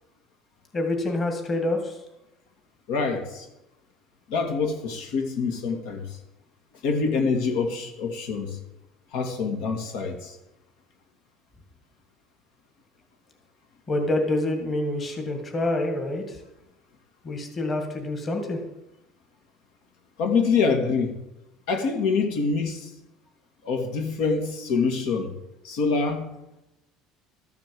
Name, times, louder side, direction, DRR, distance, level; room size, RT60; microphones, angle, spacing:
voice 1, 0.7-1.9 13.9-16.4 17.3-18.6, left 1 dB, 25° left, 3 dB, 2.0 m, -27 dB
voice 2, 2.9-3.5 4.3-6.2 6.8-8.6 9.1-10.4 20.2-21.1 21.7-22.9 23.6-25.3 25.6-26.3, left 4 dB, 75° left, 4 dB, 2.2 m, -25 dB
13.0 x 7.1 x 7.6 m, 0.89 s
cardioid pair, 155°, 0 cm